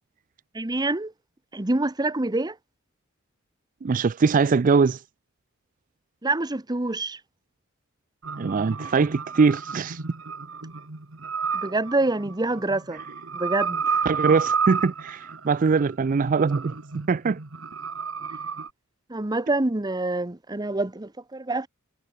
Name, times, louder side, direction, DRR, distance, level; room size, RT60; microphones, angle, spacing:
voice 1, 0.5-1.1 1.5-2.5 6.2-7.2 11.5-13.0 13.3-14.0 19.1-21.7, right 2 dB, 20° right, 0.9 m, -26 dB
voice 2, 3.8-5.0 8.4-10.0 14.1-16.8 17.1-17.4, right 5 dB, 40° right, 0.4 m, -22 dB
sound 1, 8.2-18.7, right 5 dB, 70° right, 1.7 m, -31 dB
head